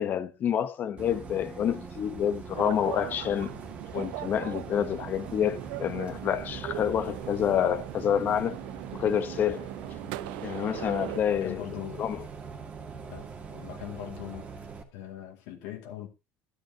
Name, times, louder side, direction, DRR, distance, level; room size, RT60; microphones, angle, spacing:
voice 1, 0.0-3.6 3.9-8.6 8.9-9.7 10.4-11.6 12.0-12.2, left 9 dB, 40° left, 0.9 m, -28 dB
Bus, 1.0-14.8, right 5 dB, 25° right, 2.0 m, -42 dB
sound 1, 2.5-11.2, right 18 dB, 85° right, 0.6 m, -40 dB
voice 2, 11.3-12.0 13.1-13.3 13.5-14.6 14.9-16.1, left 12 dB, 80° left, 2.2 m, -40 dB
13.0 x 10.0 x 2.8 m
cardioid pair, 135°, 5 cm